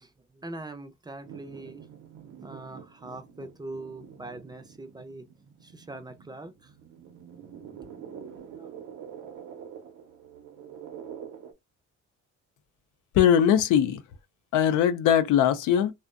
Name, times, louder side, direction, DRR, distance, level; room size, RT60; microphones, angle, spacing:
voice 1, 0.0-1.9 2.4-5.3 5.6-6.7 8.5-8.7, right 2 dB, 15° right, 0.4 m, -42 dB
sound 1, 1.2-11.5, right 8 dB, 85° right, 0.7 m, -46 dB
voice 2, 13.1-14.0 14.5-15.9, left 9 dB, 90° left, 0.5 m, -21 dB
2.5 x 2.1 x 2.4 m
cardioid pair, 90°, 30 cm